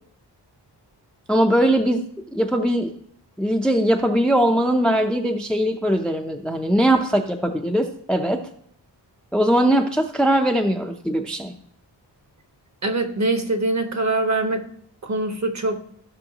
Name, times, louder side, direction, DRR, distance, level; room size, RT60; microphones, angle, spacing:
voice 1, 1.3-2.0 2.3-2.9 3.4-8.4 9.3-11.5, right 1 dB, ahead, 4 dB, 0.5 m, -20 dB
voice 2, 12.8-14.7 15.0-15.8, right 2 dB, 40° right, 6 dB, 1.0 m, -23 dB
14.5 x 5.6 x 2.9 m, 0.67 s
wide cardioid pair, 155°, 43 cm